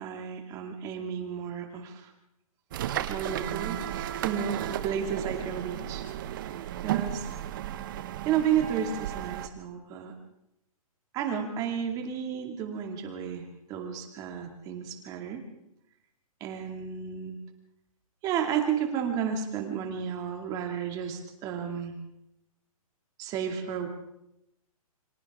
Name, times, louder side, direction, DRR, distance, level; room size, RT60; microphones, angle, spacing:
voice 1, 0.0-2.1 3.1-6.3 6.8-7.3 8.2-10.1 11.1-15.4 16.4-17.4 18.2-22.0 23.2-23.9, right 8 dB, 20° right, 4 dB, 2.3 m, -32 dB
sound 1, 2.7-9.5, right 11 dB, 35° right, 1.1 m, -34 dB
29.0 x 24.5 x 3.7 m, 0.84 s
hypercardioid pair, 165°, 19 cm